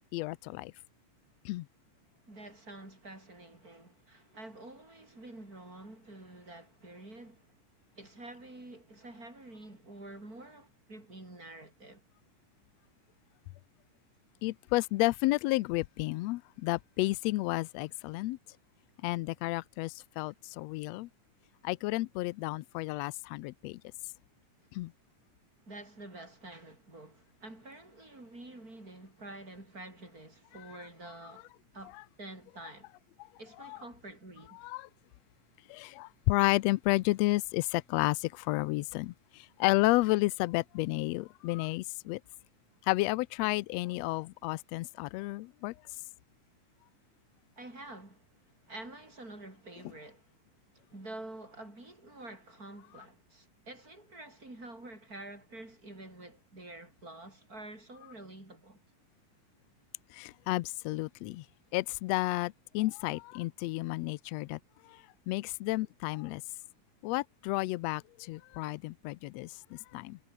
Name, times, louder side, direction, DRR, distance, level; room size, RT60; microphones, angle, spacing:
voice 1, 0.1-0.7 1.4-1.7 14.4-18.4 19.0-21.1 21.6-23.8 24.7-24.9 33.6-33.8 34.6-34.9 35.7-42.2 42.9-45.7 60.1-61.4 61.7-64.6 65.3-66.4 67.0-70.2, left 20 dB, 90° left, 1.4 m, -31 dB
voice 2, 2.3-7.5 8.0-12.0 25.6-32.9 33.4-34.6 47.6-48.2 48.7-50.2 50.9-58.8, right 2 dB, 25° right, 8.6 m, -48 dB
omnidirectional pair, 3.7 m